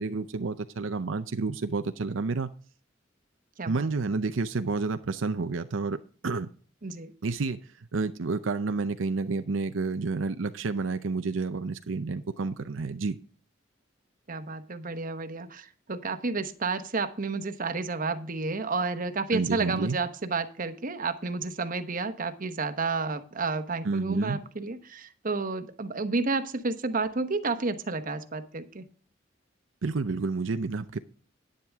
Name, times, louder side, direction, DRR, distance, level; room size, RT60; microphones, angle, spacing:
voice 1, 0.0-2.5 3.7-6.0 6.2-6.5 7.2-7.6 7.9-13.2 19.3-20.0 23.8-24.4 29.8-31.0, right 4 dB, 85° right, 9 dB, 0.6 m, -30 dB
voice 2, 6.8-7.1 14.3-28.8, right 3 dB, 45° right, 10 dB, 1.0 m, -31 dB
10.5 x 9.6 x 3.5 m, 0.41 s
head